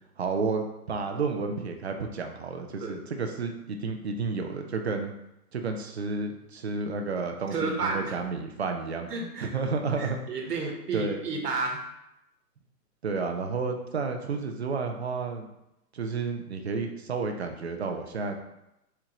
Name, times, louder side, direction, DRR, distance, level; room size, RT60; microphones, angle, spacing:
voice 1, 0.2-5.1 5.5-9.1 9.4-10.2 10.9-11.2 13.0-15.5 15.9-18.4, right 4 dB, 45° right, 4 dB, 0.4 m, -31 dB
voice 2, 7.5-8.1 9.1-9.5 10.0-11.8, right 3 dB, 75° right, 1 dB, 1.2 m, -31 dB
4.4 x 3.7 x 2.9 m, 0.87 s
hypercardioid pair, 160°, 48 cm